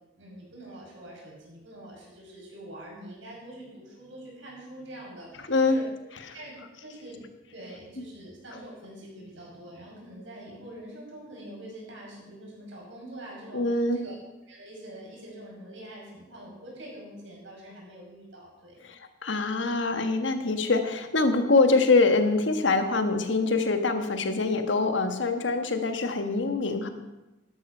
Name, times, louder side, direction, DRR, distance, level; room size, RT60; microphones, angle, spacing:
voice 1, 0.2-5.8 6.3-7.2 7.5-14.2 14.5-18.8, right 1 dB, 85° right, -2 dB, 5.8 m, -45 dB
voice 2, 13.5-14.0 18.8-26.9, left 3 dB, 80° left, 7 dB, 1.4 m, -24 dB
12.5 x 11.5 x 5.4 m, 0.99 s
head